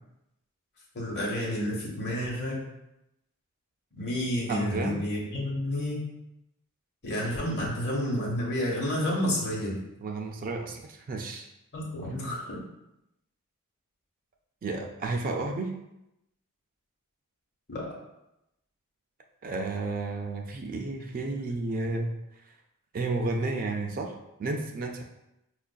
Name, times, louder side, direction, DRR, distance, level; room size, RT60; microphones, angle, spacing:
voice 1, 0.9-2.6 3.9-6.0 7.0-9.8 11.7-12.6 17.7-17.9, left 1 dB, 50° left, -3 dB, 1.0 m, -30 dB
voice 2, 4.5-5.1 10.0-11.5 14.6-15.7 19.4-22.1 22.4-22.5 22.9-24.1 24.4-25.0, right 3 dB, 40° right, 2 dB, 0.3 m, -32 dB
5.1 x 2.4 x 2.2 m, 0.87 s
head